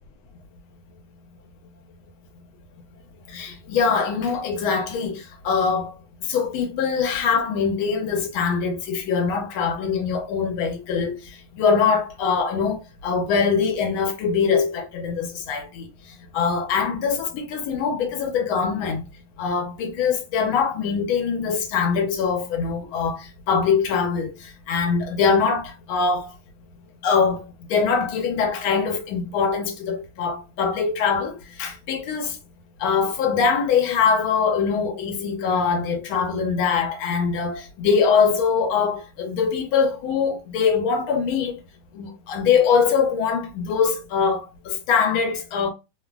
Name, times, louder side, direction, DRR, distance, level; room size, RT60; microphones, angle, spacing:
voice 1, 3.3-19.0 19.4-26.3 27.0-32.4 32.8-41.6 41.9-45.7, left 6 dB, 75° left, 1.4 m, -23 dB
3.8 x 2.0 x 2.3 m
omnidirectional pair, 2.4 m